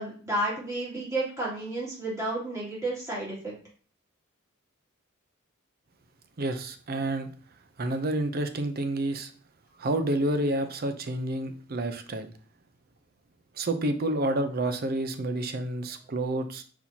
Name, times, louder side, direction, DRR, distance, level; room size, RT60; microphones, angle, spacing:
voice 1, 0.0-3.5, right 1 dB, 15° right, -7 dB, 2.4 m, -31 dB
voice 2, 6.4-7.3 7.8-9.3 9.8-12.3 13.6-16.6, right 1 dB, 50° right, 8 dB, 0.6 m, -29 dB
4.4 x 4.2 x 2.8 m, 0.42 s
head